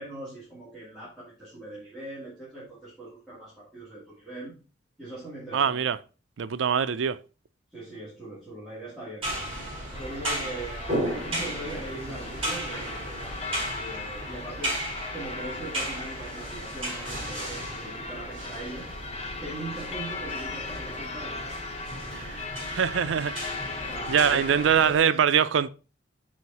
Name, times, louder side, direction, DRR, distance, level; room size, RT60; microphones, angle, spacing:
voice 1, 0.0-4.5 5.0-5.8 7.7-9.3 10.0-13.4 13.7-18.9 19.4-21.5 23.9-25.1, right 2 dB, ahead, 2.3 m, -40 dB
voice 2, 5.5-6.0 6.4-7.2 22.7-23.3 24.1-25.7, right 7 dB, 80° right, 0.4 m, -23 dB
sound 1, 9.2-25.0, right 1 dB, 30° right, 4.1 m, -35 dB
sound 2, 9.9-24.8, left 3 dB, 30° left, 0.7 m, -38 dB
6.4 x 4.5 x 4.1 m
head